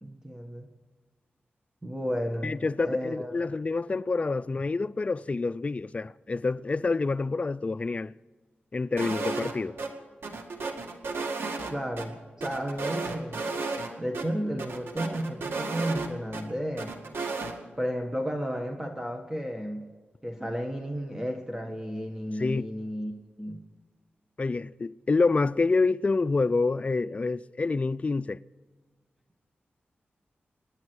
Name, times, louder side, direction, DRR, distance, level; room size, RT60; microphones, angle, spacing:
voice 1, 0.0-0.7 1.8-2.5 2.8-3.5 11.7-13.4 14.0-16.9 17.8-19.8 20.2-23.1 23.4-23.6, equal, 10° right, 1.6 m, -33 dB
voice 2, 2.4-8.1 8.7-9.8 22.4-22.7 24.4-28.4, left 3 dB, 35° left, 0.4 m, -27 dB
sound 1, 9.0-9.5 9.8-9.9 10.2-12.1 12.4-13.9 14.1-14.3 14.6-16.4 16.8-17.5, right 3 dB, 90° right, 1.9 m, -33 dB
26.5 x 10.5 x 4.7 m
wide cardioid pair, 105°, 4 cm